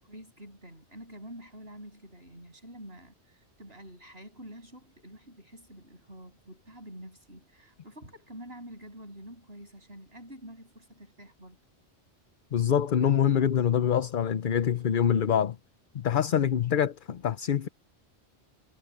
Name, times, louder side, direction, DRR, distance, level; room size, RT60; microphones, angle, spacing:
voice 1, 0.0-11.6, equal, 60° right, 8.5 m, -47 dB
voice 2, 12.5-15.6 15.9-17.7, left 9 dB, 50° left, 0.8 m, -25 dB
omnidirectional pair, 1.2 m